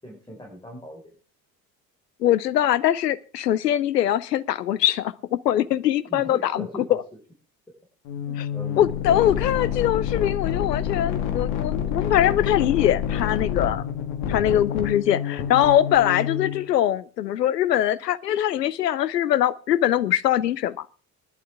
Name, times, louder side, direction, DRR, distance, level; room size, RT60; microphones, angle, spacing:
voice 1, 0.0-1.2 6.1-7.0 8.2-9.2, equal, 10° left, -1 dB, 4.9 m, -39 dB
voice 2, 2.2-7.0 8.8-13.8 14.3-20.9, left 11 dB, 75° left, 17 dB, 0.8 m, -22 dB
sound 1, 8.1-16.7, left 8 dB, 55° left, 1.9 m, -28 dB
20.0 x 11.5 x 3.5 m, 0.36 s
figure-of-eight pair, 60°, 49 cm